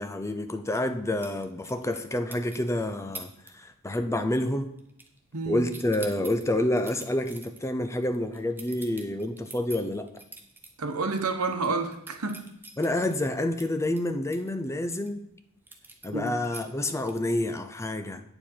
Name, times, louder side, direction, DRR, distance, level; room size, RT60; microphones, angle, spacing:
voice 1, 0.0-4.7 5.5-10.1 12.8-15.3 16.0-18.2, left 1 dB, 15° left, 8 dB, 0.5 m, -28 dB
sound 1, 1.2-2.1 2.3-2.7 3.1-3.5 3.8-4.1 4.4-5.4 5.7-10.7 11.1-11.2 11.5-15.1 15.7-17.3, right 3 dB, 10° right, 0.9 m, -45 dB
voice 2, 5.3-5.6 10.8-12.5 16.1-16.4, right 3 dB, 75° right, 7 dB, 1.1 m, -29 dB
8.8 x 7.1 x 4.5 m, 0.76 s
head